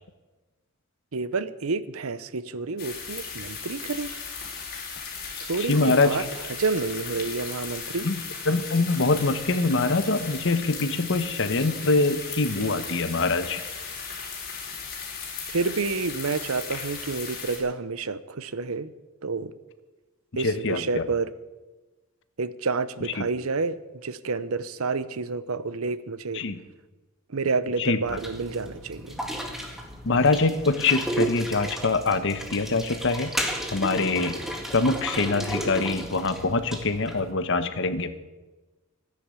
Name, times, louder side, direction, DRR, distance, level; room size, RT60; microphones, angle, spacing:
voice 1, 1.1-4.1 5.5-8.1 15.5-18.9 19.2-19.5 20.3-21.3 22.4-26.4 27.3-29.2, right 4 dB, 85° right, 16 dB, 0.8 m, -29 dB
sound 1, 2.8-17.6, left 5 dB, 45° left, 4.3 m, -36 dB
voice 2, 5.6-6.2 8.0-13.6 20.3-21.0 23.2-23.3 26.3-26.6 27.8-28.0 30.0-33.3 33.7-34.4 34.7-38.2, left 3 dB, 60° left, 12 dB, 1.1 m, -24 dB
sound 2, 28.0-37.3, right 1 dB, ahead, 1.9 m, -33 dB
13.5 x 10.5 x 8.2 m, 1.2 s
head